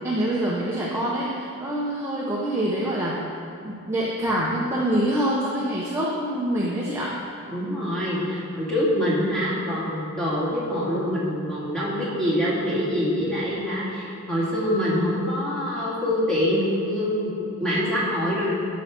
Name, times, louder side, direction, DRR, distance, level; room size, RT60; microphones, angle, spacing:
voice 1, 0.0-3.2 3.6-7.1, right 1 dB, 10° right, -6 dB, 1.0 m, -25 dB
voice 2, 7.5-18.5, equal, 5° left, -9 dB, 2.7 m, -25 dB
12.5 x 5.2 x 6.2 m, 2.8 s
head